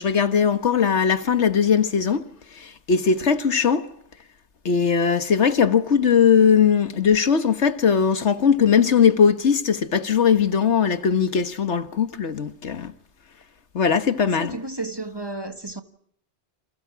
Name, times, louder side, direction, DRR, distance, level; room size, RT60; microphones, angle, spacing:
voice 1, 0.0-2.3 2.5-3.9 4.6-12.9 13.7-14.5, left 7 dB, 90° left, 1.7 m, -19 dB
voice 2, 14.2-15.8, right 2 dB, 20° right, 1.6 m, -32 dB
29.5 x 26.5 x 6.1 m
omnidirectional pair, 1.1 m